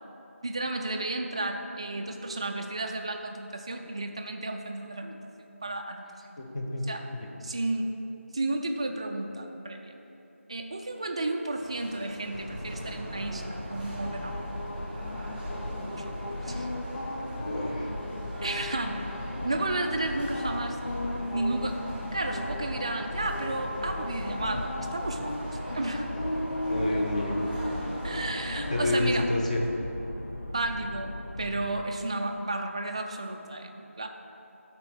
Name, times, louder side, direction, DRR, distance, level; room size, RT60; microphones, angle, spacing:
voice 1, 0.4-5.2 5.6-6.0 6.9-7.0 7.4-7.9 8.3-9.9 10.5-14.5 15.9-16.2 16.5-16.7 18.4-19.1 19.4-20.8 21.3-21.8 22.1-26.1 28.0-29.3 30.4-34.1, right 2 dB, 25° right, 4 dB, 0.4 m, -32 dB
voice 2, 6.4-6.9 17.4-17.9 26.7-27.4 28.7-29.6, left 1 dB, 30° left, 0 dB, 1.0 m, -29 dB
sound 1, 11.6-28.9, right 1 dB, 10° right, 0.8 m, -42 dB
sound 2, 12.3-31.8, left 1 dB, 60° left, 0.7 m, -35 dB
12.5 x 4.5 x 6.0 m, 3.0 s
figure-of-eight pair, 170°, 8 cm